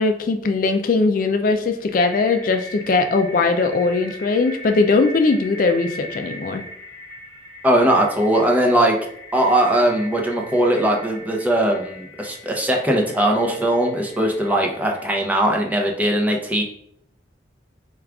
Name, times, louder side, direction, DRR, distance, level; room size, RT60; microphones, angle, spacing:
voice 1, 0.0-6.6, left 3 dB, 45° left, 6 dB, 0.3 m, -20 dB
sound 1, 1.6-15.9, left 1 dB, 10° left, 1.1 m, -40 dB
voice 2, 7.6-9.0 9.3-16.6, right 1 dB, 10° right, 0 dB, 0.6 m, -19 dB
4.7 x 2.3 x 3.5 m, 0.71 s
head